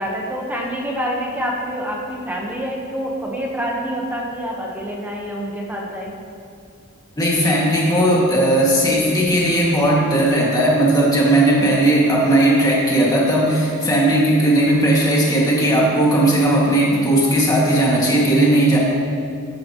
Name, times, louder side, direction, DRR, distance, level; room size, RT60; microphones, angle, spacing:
voice 1, 0.0-6.1 11.5-11.8, equal, 10° right, -2 dB, 1.1 m, -27 dB
voice 2, 7.2-18.8, right 1 dB, 15° left, -5 dB, 2.1 m, -16 dB
13.5 x 9.3 x 3.1 m, 2.3 s
head